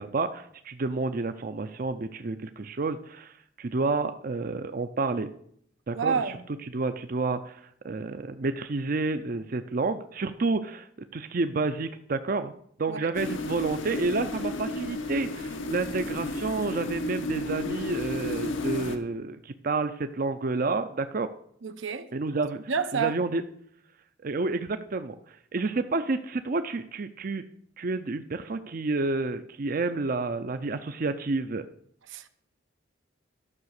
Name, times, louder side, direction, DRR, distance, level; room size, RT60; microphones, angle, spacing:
voice 1, 0.0-5.3 5.9-6.2 6.7-12.5 12.8-21.3 22.1-22.6 22.9-23.4 24.2-27.4 27.8-31.7, right 3 dB, 45° right, 0.5 m, -30 dB
voice 2, 5.9-6.4 12.9-13.1 21.6-22.1 22.7-23.2 32.1-32.3, right 6 dB, 85° right, 0.8 m, -29 dB
sound 1, 13.1-19.0, left 1 dB, 85° left, 1.2 m, -32 dB
12.0 x 6.1 x 6.5 m
head